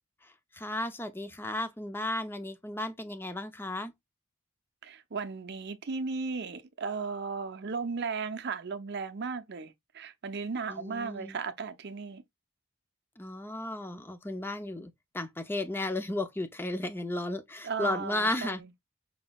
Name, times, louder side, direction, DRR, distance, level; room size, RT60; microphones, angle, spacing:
voice 1, 0.5-3.9 10.7-11.4 13.2-18.6, left 1 dB, 10° left, 0.5 m, -34 dB
voice 2, 4.8-12.2 17.6-18.7, right 4 dB, 55° right, 0.6 m, -36 dB
5.0 x 3.8 x 2.3 m
head